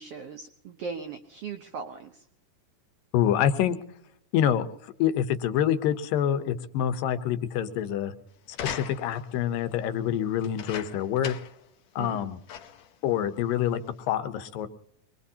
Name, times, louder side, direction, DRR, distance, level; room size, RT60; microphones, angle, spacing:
voice 1, 0.0-2.2 12.0-12.2, right 5 dB, 90° right, 6 dB, 1.3 m, -38 dB
voice 2, 3.1-3.8 4.3-8.1 8.6-11.3 12.0-12.4 13.0-13.8 14.1-14.7, left 10 dB, 85° left, 11 dB, 2.6 m, -26 dB
sound 1, 8.5-9.3 10.4-11.6 12.0-12.1 12.5-12.9 13.7-13.8, left 8 dB, 70° left, 1.8 m, -39 dB
25.0 x 21.0 x 2.8 m, 0.70 s
omnidirectional pair, 3.9 m